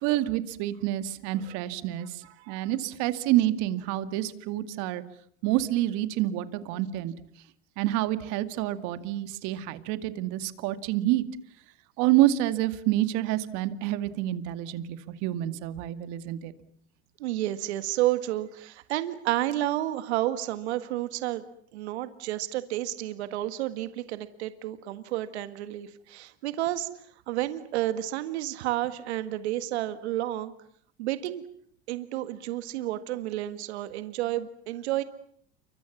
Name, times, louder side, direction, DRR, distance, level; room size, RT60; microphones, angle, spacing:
voice 1, 0.0-5.0 5.4-7.1 7.8-11.2 12.0-16.5, right 14 dB, 65° right, 11 dB, 2.3 m, -28 dB
voice 2, 2.2-2.7 17.2-21.4 21.7-26.9 27.3-30.5 31.0-31.4 31.9-35.0, right 14 dB, 80° right, 11 dB, 1.8 m, -31 dB
29.0 x 24.5 x 7.3 m, 0.63 s
supercardioid pair, 100°, 33 cm